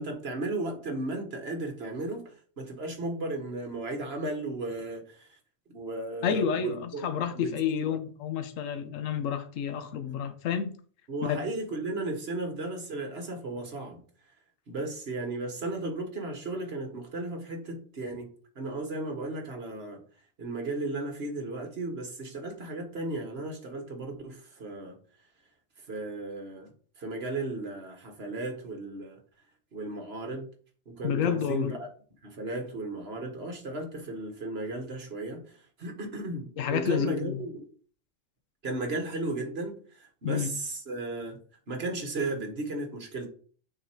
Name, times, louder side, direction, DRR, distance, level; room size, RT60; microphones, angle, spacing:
voice 1, 0.0-5.4 5.7-7.1 7.3-7.9 11.1-14.0 14.7-18.3 18.6-20.0 20.4-25.0 25.8-26.7 27.0-29.2 29.7-30.5 30.9-31.9 32.2-37.7 38.6-41.4 41.7-43.3, right 2 dB, 50° right, 1.6 m, -35 dB
voice 2, 6.2-10.8 11.3-11.4 31.0-31.7 36.6-37.4 40.2-40.5, left 7 dB, 75° left, 1.2 m, -29 dB
6.5 x 4.1 x 4.5 m
omnidirectional pair, 1.4 m